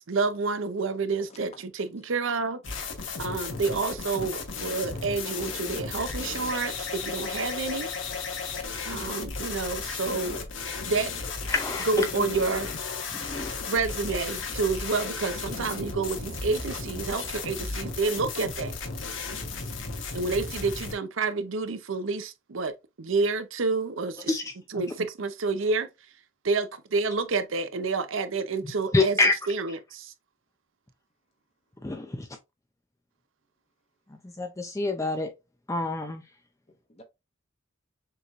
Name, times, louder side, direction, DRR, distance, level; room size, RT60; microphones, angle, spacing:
voice 1, 0.0-2.6 3.2-7.9 8.8-10.5 10.8-11.1 11.9-12.7 13.7-18.7 20.1-24.3 24.7-25.9 26.4-29.2 29.5-30.1, right 4 dB, 75° right, 0.6 m, -29 dB
voice 2, 1.3-1.6 36.7-37.0, left 2 dB, 30° left, 1.1 m, -53 dB
sound 1, 2.6-20.9, left 4 dB, 70° left, 1.2 m, -34 dB
voice 3, 11.5-12.1 13.1-13.6 24.3-24.8 28.6-29.4 31.8-32.3 34.1-35.3 35.7-36.2, left 3 dB, 15° left, 0.5 m, -27 dB
6.7 x 3.0 x 2.4 m
head